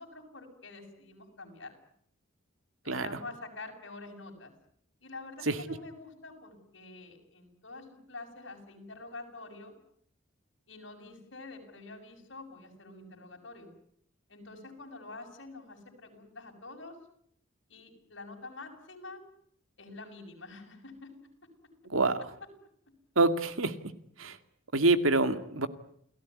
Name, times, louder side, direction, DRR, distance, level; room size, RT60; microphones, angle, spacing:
voice 1, 0.0-1.7 2.8-4.5 5.0-9.7 10.7-13.7 14.3-17.0 17.7-19.2 19.8-21.1, left 3 dB, 60° left, 3 dB, 7.5 m, -47 dB
voice 2, 21.9-22.2 23.2-23.7 24.2-24.4 24.7-25.7, right 2 dB, 90° right, 10 dB, 2.2 m, -26 dB
29.0 x 18.0 x 9.8 m, 0.68 s
head